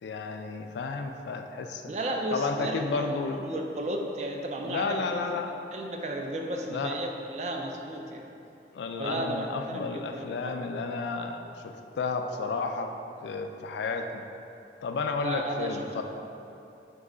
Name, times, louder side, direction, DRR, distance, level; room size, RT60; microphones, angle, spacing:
voice 1, 0.0-1.8 2.3-3.4 4.6-5.5 6.7-6.9 8.7-12.9 13.2-14.2 14.8-16.0, left 4 dB, 80° left, 6 dB, 0.3 m, -32 dB
voice 2, 1.9-5.2 5.7-8.3 9.0-10.6 15.2-15.9, right 1 dB, 40° right, 2 dB, 0.3 m, -34 dB
4.6 x 3.1 x 3.7 m, 2.8 s
head